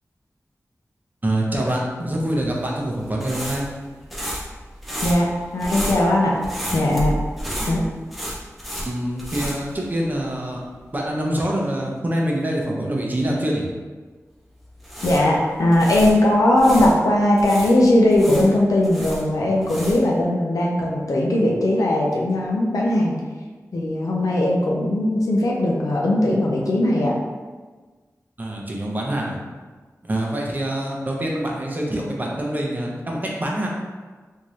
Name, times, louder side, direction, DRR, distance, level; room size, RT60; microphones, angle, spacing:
voice 1, 1.2-3.7 8.9-10.6 10.9-13.7 28.4-29.4 30.0-33.7, right 1 dB, 30° right, -2 dB, 0.7 m, -25 dB
sound 1, 2.3-10.4 10.7-10.9 14.6-16.9 17.4-20.2, equal, ahead, 0.8 m, -31 dB
voice 2, 5.0-6.4 6.7-7.1 7.7-7.8 15.0-23.1 23.7-27.2, left 1 dB, 80° left, -3 dB, 0.5 m, -19 dB
3.6 x 2.7 x 3.1 m, 1.4 s
wide cardioid pair, 90°, 6 cm